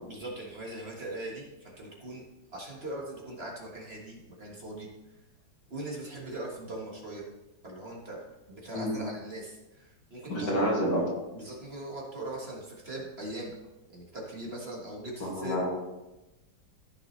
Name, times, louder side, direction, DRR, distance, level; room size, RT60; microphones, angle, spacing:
voice 1, 0.1-2.2 2.5-4.9 5.7-7.3 7.6-8.2 8.5-10.5 11.3-13.5 13.9-15.6, right 1 dB, 35° right, -3 dB, 1.7 m, -40 dB
voice 2, 10.3-11.0 15.2-15.7, equal, 70° left, -3 dB, 2.9 m, -28 dB
14.5 x 5.9 x 3.2 m, 1.0 s
omnidirectional pair, 1.9 m